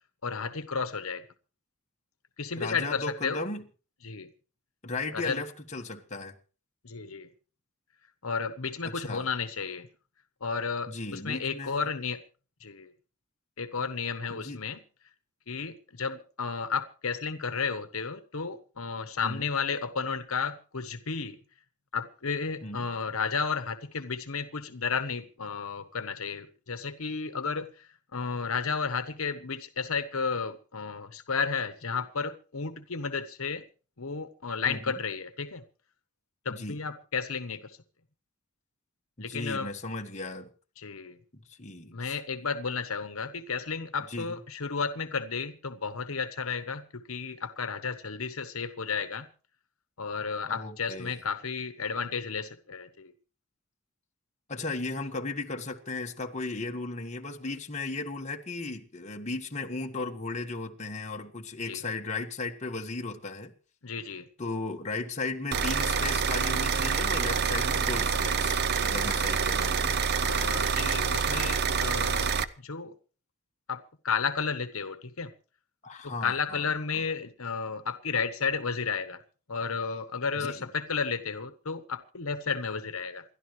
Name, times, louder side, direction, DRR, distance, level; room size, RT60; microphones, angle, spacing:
voice 1, 0.2-1.2 2.4-3.4 4.0-4.3 5.1-5.4 6.8-7.3 8.2-9.9 10.4-12.2 12.6-12.9 13.6-14.8 15.5-21.4 21.9-33.6 34.0-35.6 36.4-37.8 39.2-39.7 40.8-41.2 41.9-49.3 50.0-53.1 61.7-61.8 63.8-64.3 70.2-72.9 73.7-75.3 76.0-79.2 79.5-83.2, left 5 dB, 70° left, 1.1 m, -33 dB
voice 2, 2.6-3.7 4.8-6.3 8.8-9.3 10.9-11.9 14.3-14.6 19.2-19.5 22.6-22.9 34.7-35.0 36.5-36.8 39.2-40.5 41.3-42.2 44.1-44.3 50.5-51.2 54.5-63.5 64.4-70.0 75.8-76.7 76.9-77.0 80.3-80.7, left 3 dB, 30° left, 1.4 m, -36 dB
sound 1, 65.5-72.4, right 6 dB, 50° right, 0.6 m, -27 dB
28.5 x 12.0 x 3.2 m
head